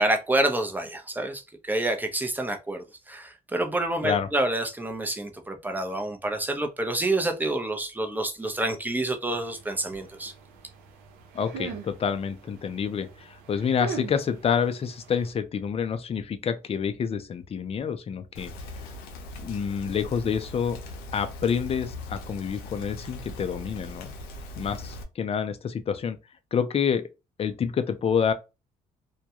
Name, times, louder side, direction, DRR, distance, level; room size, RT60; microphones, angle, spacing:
voice 1, 0.0-10.3, right 1 dB, 10° right, 0.6 m, -28 dB
sound 1, 9.3-15.3, right 6 dB, 85° right, 0.6 m, -42 dB
voice 2, 11.3-18.5 19.4-20.8 21.1-24.1 24.6-26.2 26.5-27.1 27.4-28.3, left 7 dB, 40° left, 0.5 m, -28 dB
Rain, 18.3-25.0, left 2 dB, 90° left, 0.6 m, -40 dB
2.3 x 2.1 x 2.8 m
supercardioid pair, 75°, 15 cm